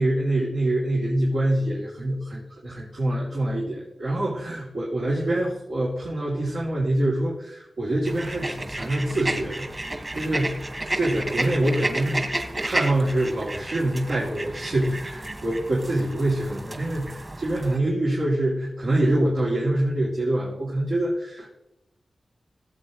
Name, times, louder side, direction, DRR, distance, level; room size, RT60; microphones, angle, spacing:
voice 1, 0.0-9.7 10.1-10.7 10.9-21.5, right 1 dB, 85° right, -7 dB, 2.9 m, -25 dB
sound 1, 8.0-17.8, right 1 dB, 35° right, 1.7 m, -32 dB
16.5 x 8.1 x 3.2 m, 0.87 s
cardioid pair, 65°, 0 cm